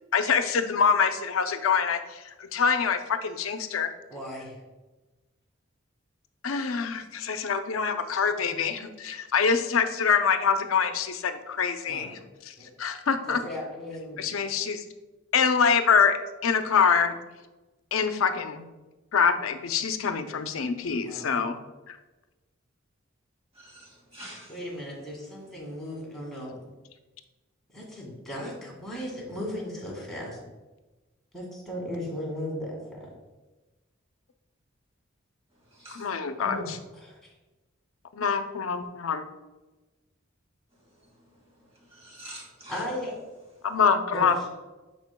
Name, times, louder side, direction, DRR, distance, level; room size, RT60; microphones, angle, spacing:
voice 1, 0.1-3.9 6.4-12.2 12.5-13.4 14.2-14.8 15.3-17.2 17.9-18.7 19.1-21.6 21.9-22.0 35.9-36.8 38.1-39.2 43.6-44.3, left 6 dB, 85° left, 9 dB, 0.5 m, -25 dB
voice 2, 4.1-4.6 11.9-12.2 12.6-12.7 13.3-14.2 21.0-21.4 24.5-26.6 27.7-30.4 31.3-33.1 36.4-37.2 42.7-43.1 44.1-44.5, equal, ahead, -3 dB, 1.9 m, -36 dB
voice 3, 23.5-24.6 35.7-36.1 41.0-41.3 41.7-42.8, right 1 dB, 30° right, -3 dB, 2.1 m, -46 dB
10.5 x 4.4 x 2.2 m, 1.1 s
head